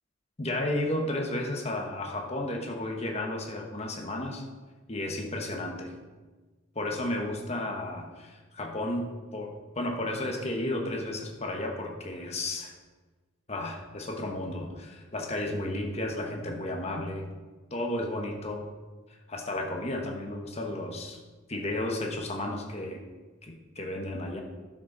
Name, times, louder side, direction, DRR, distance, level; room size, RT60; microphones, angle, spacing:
voice 1, 0.4-4.4 4.9-5.9 6.7-12.7 13.5-17.3 17.7-18.6 19.3-21.2 21.5-23.0 23.4-24.4, left 1 dB, 35° left, 1 dB, 1.3 m, -33 dB
11.5 x 6.3 x 4.0 m, 1.3 s
head